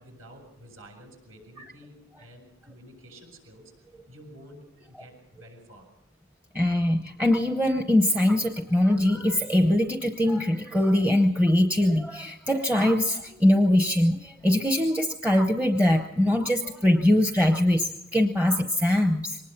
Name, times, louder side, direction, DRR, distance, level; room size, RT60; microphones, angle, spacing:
voice 1, 0.0-3.7 4.1-6.0, equal, 75° right, 1 dB, 7.3 m, -50 dB
voice 2, 6.5-19.4, left 1 dB, 5° right, 5 dB, 0.7 m, -22 dB
24.5 x 19.5 x 5.8 m, 0.83 s
head